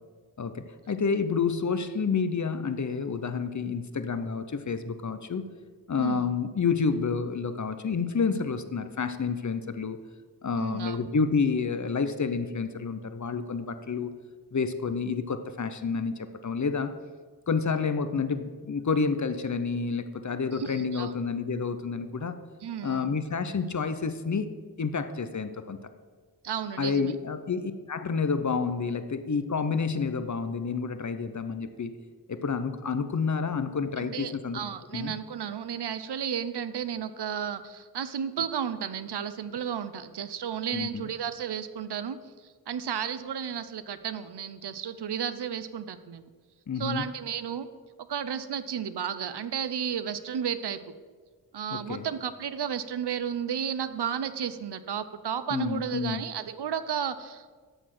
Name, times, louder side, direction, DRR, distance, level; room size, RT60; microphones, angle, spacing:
voice 1, 0.4-5.6 5.9-10.0 10.4-14.2 14.5-17.0 17.5-22.4 22.8-24.5 24.8-25.8 26.8-32.0 32.3-34.6 34.9-35.1 40.7-41.1 46.7-47.1 51.7-52.1 55.5-56.2, left 5 dB, 45° left, 10 dB, 0.7 m, -29 dB
voice 2, 6.0-6.3 10.6-11.0 20.5-21.1 22.6-23.1 26.4-27.1 34.0-42.2 42.4-46.3 46.8-47.7 48.1-50.9 51.5-57.5, right 8 dB, 70° right, 12 dB, 0.7 m, -33 dB
13.0 x 4.3 x 7.6 m, 1.5 s
wide cardioid pair, 80°, 42 cm